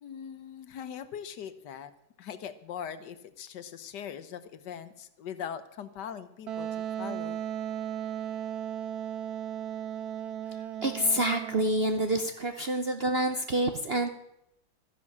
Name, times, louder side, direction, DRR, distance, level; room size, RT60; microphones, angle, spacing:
voice 1, 0.0-1.9 2.2-6.7 7.0-7.4, left 8 dB, 70° left, 13 dB, 1.5 m, -41 dB
Wind instrument woodwind instrument, 6.5-12.0, right 10 dB, 65° right, 1.1 m, -36 dB
voice 2, 10.5-14.1, right 1 dB, 45° right, 6 dB, 0.8 m, -28 dB
13.5 x 10.5 x 7.3 m, 0.82 s
omnidirectional pair, 2.0 m